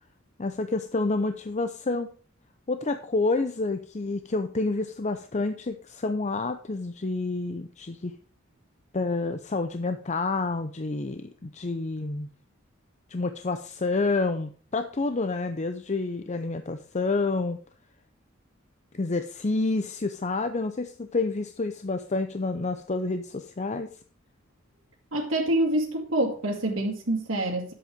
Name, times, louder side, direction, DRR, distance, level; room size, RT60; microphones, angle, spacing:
voice 1, 0.4-2.1 2.7-8.1 8.9-12.3 13.1-17.6 18.9-23.9, left 3 dB, 35° left, 0.6 m, -29 dB
voice 2, 25.1-27.7, right 1 dB, 70° right, 2.1 m, -26 dB
11.0 x 7.8 x 5.1 m
head